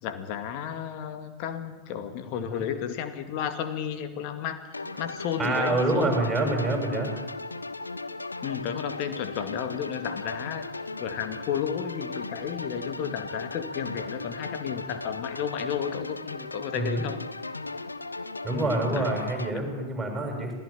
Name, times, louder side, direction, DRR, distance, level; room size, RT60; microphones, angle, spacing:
voice 1, 0.0-6.5 8.4-10.7 11.0-17.2 18.5-19.2 19.5-20.0, left 9 dB, 45° left, 9 dB, 2.3 m, -33 dB
sound 1, 4.7-19.5, left 3 dB, 80° left, 1.0 m, -37 dB
voice 2, 5.4-7.2 16.7-17.1 18.4-20.5, right 2 dB, 10° right, 2 dB, 7.2 m, -27 dB
27.0 x 17.0 x 8.9 m, 1.2 s
figure-of-eight pair, 90°, 0 cm